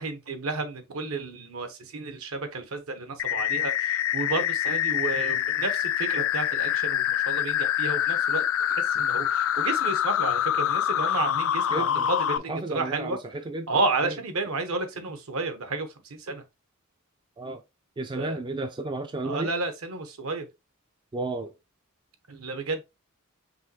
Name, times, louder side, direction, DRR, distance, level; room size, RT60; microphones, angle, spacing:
voice 1, 0.0-8.4 8.7-13.2 13.7-16.4 18.2-18.4 19.2-20.4 22.3-22.8, right 3 dB, 70° right, 0.9 m, -31 dB
sound 1, 3.2-12.4, left 10 dB, 65° left, 0.3 m, -26 dB
voice 2, 11.7-12.1 12.5-13.7 14.0-14.1 17.4-17.6 18.0-19.5 21.1-21.5, right 2 dB, 20° right, 0.3 m, -32 dB
5.4 x 3.0 x 2.7 m
head